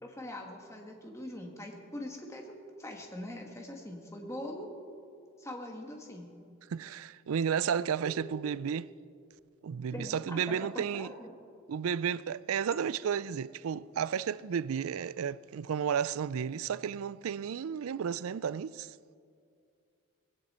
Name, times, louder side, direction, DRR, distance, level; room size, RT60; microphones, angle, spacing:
voice 1, 0.0-4.7 5.4-6.3 8.0-8.1 9.9-11.3, left 1 dB, 15° left, 1.7 m, -42 dB
voice 2, 6.7-8.9 9.6-11.1 11.7-19.2, right 7 dB, 80° right, 0.4 m, -33 dB
19.0 x 17.0 x 4.3 m
head